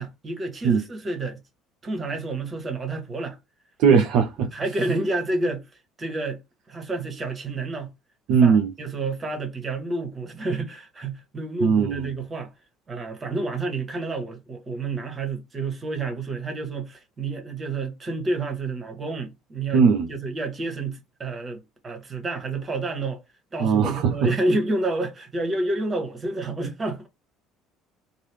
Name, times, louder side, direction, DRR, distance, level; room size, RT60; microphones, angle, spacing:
voice 1, 0.0-1.4 1.8-3.4 3.9-4.0 4.5-5.6 6.0-6.4 6.7-7.9 8.4-12.5 12.9-19.8 20.1-23.2 23.5-27.1, right 2 dB, 30° right, 1.1 m, -29 dB
voice 2, 3.8-4.5 8.3-8.7 11.6-12.1 19.7-20.1 23.6-24.3, right 6 dB, 55° right, 0.5 m, -19 dB
3.0 x 2.6 x 2.9 m
figure-of-eight pair, 60°, 0 cm